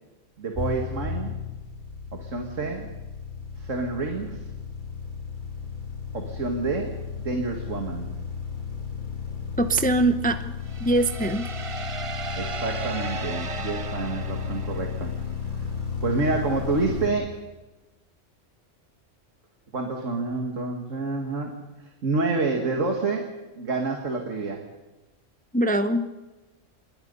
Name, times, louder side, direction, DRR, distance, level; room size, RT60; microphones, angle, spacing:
voice 1, 0.4-1.4 2.1-2.9 3.6-4.5 6.1-8.2 12.4-15.1 16.0-17.4 19.7-23.3 23.6-24.6, right 3 dB, 90° right, 3 dB, 2.5 m, -28 dB
sound 1, 0.5-17.1, left 6 dB, 40° left, 3.3 m, -34 dB
voice 2, 9.6-10.5 10.8-11.5 25.5-26.1, right 1 dB, 10° left, 9 dB, 0.8 m, -22 dB
sound 2, 10.6-15.4, right 4 dB, 30° right, 0.7 m, -36 dB
27.0 x 22.5 x 5.5 m, 1.1 s
omnidirectional pair, 1.3 m